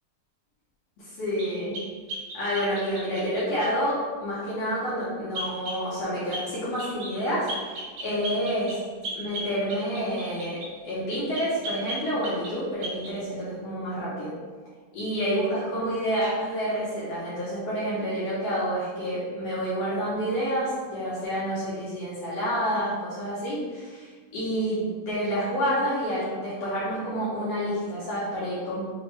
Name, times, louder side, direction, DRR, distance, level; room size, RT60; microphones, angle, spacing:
voice 1, 1.0-1.9 2.3-8.8 9.1-14.3 14.9-28.8, equal, 65° left, -9 dB, 1.7 m, -29 dB
sound 1, 1.4-3.3 5.3-5.8 6.3-6.5 6.8-7.2 7.5-10.7 11.3-12.6 12.8-13.1, right 1 dB, 80° right, 2.5 m, -36 dB
6.2 x 2.3 x 3.3 m, 1.5 s
omnidirectional pair, 3.8 m